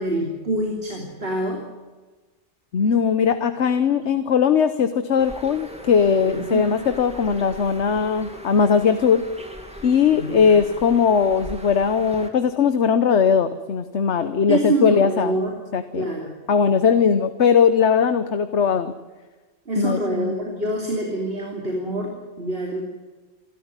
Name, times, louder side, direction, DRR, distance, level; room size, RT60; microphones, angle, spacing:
voice 1, 0.0-1.7 6.3-6.7 10.1-10.5 14.5-15.6 15.9-16.3 19.7-22.8, right 2 dB, 55° right, 0 dB, 3.3 m, -26 dB
voice 2, 2.7-9.2 9.8-15.4 15.7-16.1 16.5-18.9 19.8-20.4, left 6 dB, 70° left, 10 dB, 1.2 m, -19 dB
Bird, 5.2-12.3, equal, 5° right, 2.3 m, -39 dB
28.0 x 13.5 x 9.8 m, 1.3 s
omnidirectional pair, 1.2 m